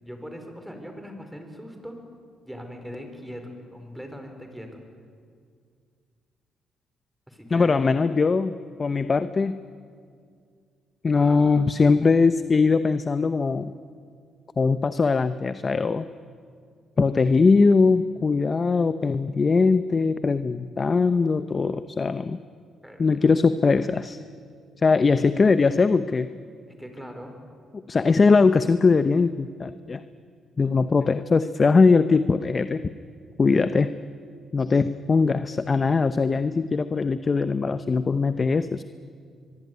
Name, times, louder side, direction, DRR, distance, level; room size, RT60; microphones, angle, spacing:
voice 1, 0.0-2.0 2.4-4.8 7.3-7.8 11.1-11.4 22.8-23.2 26.8-27.4, equal, 5° right, 5 dB, 5.0 m, -40 dB
voice 2, 7.5-8.5 8.8-9.6 11.0-13.7 14.6-16.0 17.0-22.4 23.0-24.2 24.8-26.3 27.9-30.0 30.6-32.8 33.4-33.9 34.5-38.8, left 4 dB, 35° left, 11 dB, 0.8 m, -21 dB
23.5 x 23.5 x 9.6 m, 2.2 s
cardioid pair, 90°, 0 cm